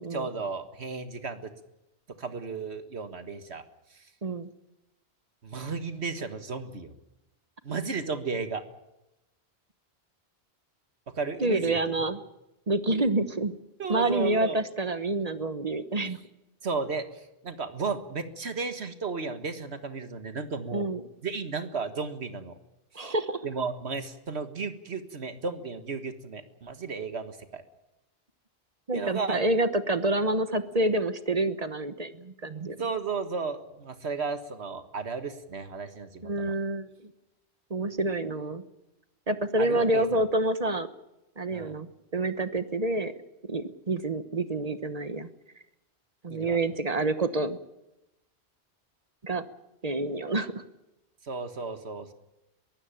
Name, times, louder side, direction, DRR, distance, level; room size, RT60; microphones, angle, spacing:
voice 1, 0.1-1.5 2.2-3.7 5.4-6.9 7.6-8.6 11.2-11.8 13.8-14.6 16.6-20.9 21.2-22.5 22.9-23.1 23.4-27.6 28.9-29.4 32.8-36.5 39.6-40.2 41.5-41.8 46.3-46.6 51.2-52.1, right 4 dB, 80° right, 9 dB, 1.9 m, -34 dB
voice 2, 4.2-4.5 11.4-12.2 12.7-13.5 13.9-16.2 20.7-21.0 22.9-23.4 28.9-32.8 36.2-36.9 37.7-38.6 39.3-40.9 41.4-43.1 43.5-45.3 46.2-47.6 49.2-49.4 49.8-50.6, right 2 dB, 40° right, 11 dB, 1.2 m, -28 dB
23.0 x 15.5 x 9.1 m, 0.94 s
omnidirectional pair, 1.1 m